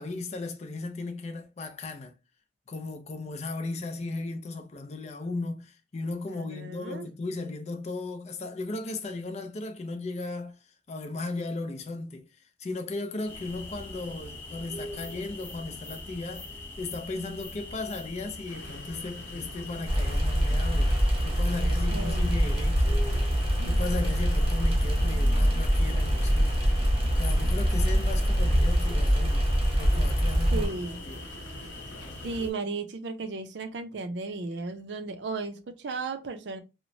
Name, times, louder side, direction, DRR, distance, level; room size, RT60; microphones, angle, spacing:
voice 1, 0.0-2.1 2.7-10.6 10.9-12.3 12.6-23.0 23.7-26.9 27.2-29.5 29.8-30.7 31.1-31.2, left 3 dB, 40° left, 0.4 m, -36 dB
voice 2, 6.3-7.1 21.9-22.3 23.6-24.0 30.5-31.0 32.2-36.6, right 3 dB, 80° right, 0.5 m, -35 dB
sound 1, 13.3-32.5, left 2 dB, 15° left, 0.8 m, -43 dB
sound 2, 18.5-32.5, left 1 dB, 85° left, 0.7 m, -45 dB
sound 3, 19.9-30.7, equal, 30° right, 0.6 m, -24 dB
3.0 x 2.0 x 2.6 m
head